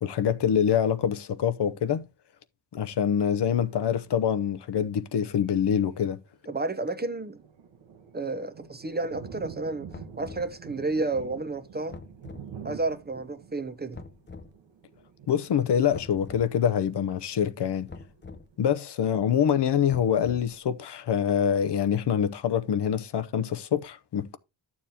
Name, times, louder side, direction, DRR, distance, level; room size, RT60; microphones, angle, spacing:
voice 1, 0.0-2.0 2.7-6.2 15.3-17.9 18.6-24.4, left 8 dB, 65° left, 0.8 m, -25 dB
voice 2, 6.5-7.4 8.1-9.9 10.2-12.0 12.6-14.0, right 2 dB, 20° right, 0.8 m, -31 dB
sound 1, 7.0-18.6, right 7 dB, 85° right, 1.2 m, -47 dB
sound 2, 9.9-10.6 11.9-12.5 13.9-14.5 15.9-16.5 17.9-18.5 19.9-20.6, left 4 dB, 25° left, 0.8 m, -44 dB
11.5 x 7.2 x 2.8 m
cardioid pair, 70°, 45 cm